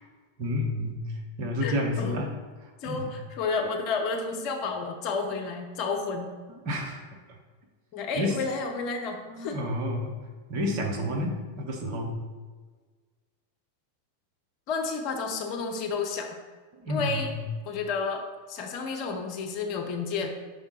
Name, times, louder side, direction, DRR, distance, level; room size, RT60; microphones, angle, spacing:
voice 1, 0.4-1.0 1.4-2.3 2.8-3.1 6.5-7.0 8.2-8.3 9.3-10.1 10.5-12.1 16.7-17.4, left 1 dB, 45° right, 1 dB, 1.1 m, -30 dB
voice 2, 1.6-2.2 2.8-6.3 7.9-9.6 14.7-16.4 16.9-17.3 17.6-20.3, left 4 dB, 40° left, 3 dB, 0.8 m, -31 dB
5.6 x 3.6 x 5.6 m, 1.4 s
figure-of-eight pair, 90°, 0 cm